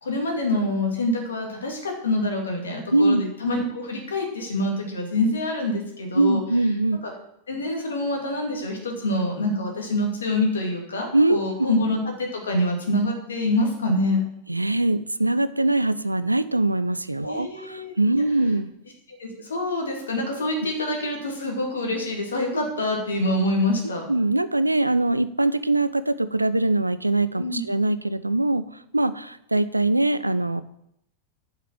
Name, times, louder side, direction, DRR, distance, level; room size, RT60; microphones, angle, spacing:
voice 1, 0.0-6.4 7.5-14.2 17.2-17.9 19.2-24.1 27.4-27.6, left 1 dB, 70° left, 1 dB, 2.5 m, -26 dB
voice 2, 2.9-3.2 6.1-7.0 11.1-11.4 14.5-18.7 22.5-22.6 23.8-28.6 28.9-30.6, right 2 dB, 85° right, 14 dB, 0.4 m, -22 dB
7.5 x 5.8 x 7.5 m, 0.76 s
figure-of-eight pair, 90°, 0 cm